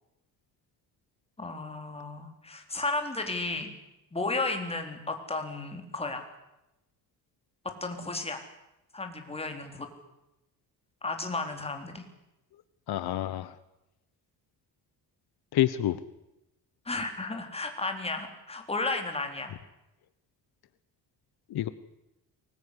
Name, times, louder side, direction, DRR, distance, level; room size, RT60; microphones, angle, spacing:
voice 1, 1.4-3.7 4.1-6.3 7.8-8.4 8.9-9.9 11.0-12.0 16.9-19.5, left 3 dB, 15° left, 4 dB, 3.7 m, -33 dB
voice 2, 12.9-13.6 15.5-16.0 21.5-21.7, left 12 dB, 70° left, 14 dB, 1.1 m, -27 dB
23.5 x 20.5 x 10.0 m, 0.93 s
cardioid pair, 155°, 39 cm